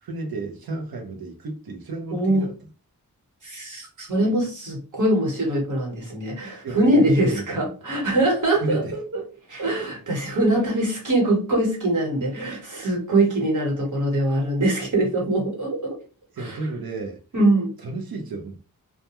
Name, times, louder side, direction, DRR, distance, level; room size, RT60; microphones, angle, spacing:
voice 1, 0.0-2.5 6.6-7.6 8.6-9.0 16.3-17.2 17.8-18.6, right 2 dB, 85° right, 0.7 m, -32 dB
voice 2, 2.1-2.5 3.4-9.2 9.5-16.0 16.4-16.6 17.3-17.7, right 1 dB, 60° right, 1.3 m, -23 dB
2.2 x 2.2 x 2.9 m
wide cardioid pair, 100°, 35 cm